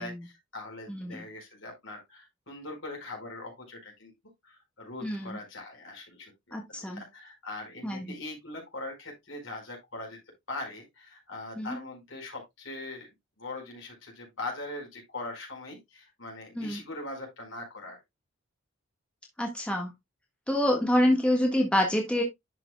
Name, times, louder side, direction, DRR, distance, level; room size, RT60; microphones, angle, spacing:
voice 1, 0.0-4.1 4.4-10.2 10.5-13.1 13.4-18.0, left 2 dB, 65° left, 4.8 m, -41 dB
voice 2, 0.9-1.2 5.0-5.4 6.5-7.0 7.8-8.1 11.5-11.8 16.5-16.8 19.4-19.9 20.5-22.2, left 1 dB, 5° left, 1.5 m, -27 dB
11.0 x 6.5 x 2.2 m
head